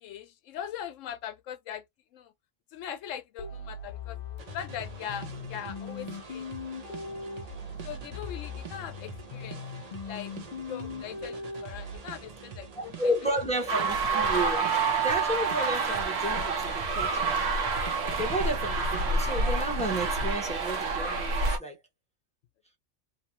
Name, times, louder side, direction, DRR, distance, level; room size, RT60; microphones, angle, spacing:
voice 1, 0.0-1.9 2.1-2.3 2.7-4.2 4.5-6.5 7.8-9.6 10.0-10.3 10.7-13.1, left 9 dB, 90° left, 0.9 m, -40 dB
sound 1, 3.4-12.0, left 4 dB, 65° left, 0.4 m, -40 dB
sound 2, 4.4-20.1, right 4 dB, 40° right, 0.6 m, -44 dB
voice 2, 12.7-17.5 18.2-21.8, right 1 dB, 5° left, 0.8 m, -32 dB
sound 3, 13.7-21.6, right 3 dB, 65° right, 0.9 m, -28 dB
2.9 x 2.1 x 2.8 m
omnidirectional pair, 1.3 m